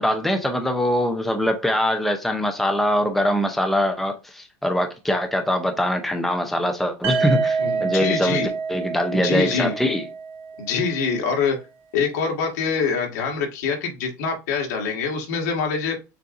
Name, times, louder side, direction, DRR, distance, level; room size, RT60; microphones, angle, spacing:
voice 1, 0.0-10.1, left 1 dB, ahead, 0.5 m, -23 dB
sound 1, 7.0-10.9, right 5 dB, 25° right, 1.0 m, -27 dB
voice 2, 7.6-8.5 9.1-9.8 10.6-11.6 11.9-15.9, left 5 dB, 80° left, 1.8 m, -25 dB
6.8 x 2.5 x 2.5 m
supercardioid pair, 160°, 9 cm